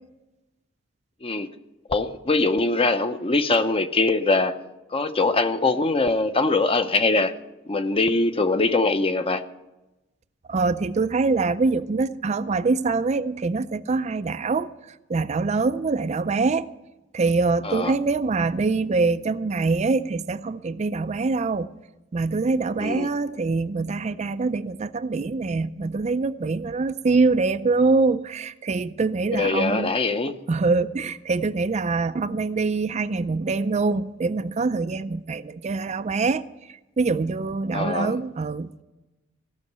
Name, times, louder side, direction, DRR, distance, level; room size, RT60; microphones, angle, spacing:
voice 1, 1.9-4.5 4.9-7.3 7.7-9.4 17.6-17.9 22.8-23.1 29.3-30.4 37.7-38.2, left 3 dB, 30° left, 10 dB, 0.7 m, -22 dB
voice 2, 10.5-14.7 15.1-16.7 17.1-21.7 22.1-29.9 30.5-38.8, right 3 dB, 35° right, 12 dB, 0.4 m, -24 dB
16.0 x 6.4 x 9.2 m, 1.0 s
head